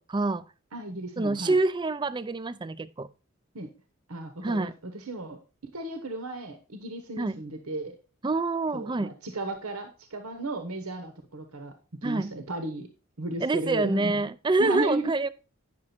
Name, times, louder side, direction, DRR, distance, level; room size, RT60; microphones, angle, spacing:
voice 1, 0.1-0.5 1.2-3.1 4.4-4.7 7.2-7.4 8.2-9.1 12.0-12.3 13.4-15.3, right 2 dB, 20° right, 0.4 m, -26 dB
voice 2, 0.7-1.6 3.5-3.7 4.1-8.0 8.7-11.7 12.0-12.9 13.2-14.2 14.6-15.1, right 2 dB, 85° right, 1.2 m, -34 dB
9.7 x 6.1 x 4.4 m
head